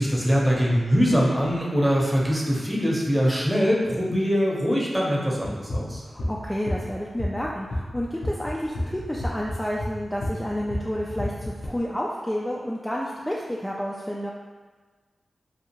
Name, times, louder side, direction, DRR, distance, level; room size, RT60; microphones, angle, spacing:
voice 1, 0.0-6.0, equal, 5° right, -4 dB, 0.7 m, -22 dB
sound 1, 5.4-11.7, left 1 dB, 65° left, 0.5 m, -30 dB
voice 2, 6.0-14.3, equal, 10° left, -4 dB, 0.3 m, -30 dB
2.6 x 2.3 x 2.9 m, 1.4 s
cardioid pair, 45°, 0 cm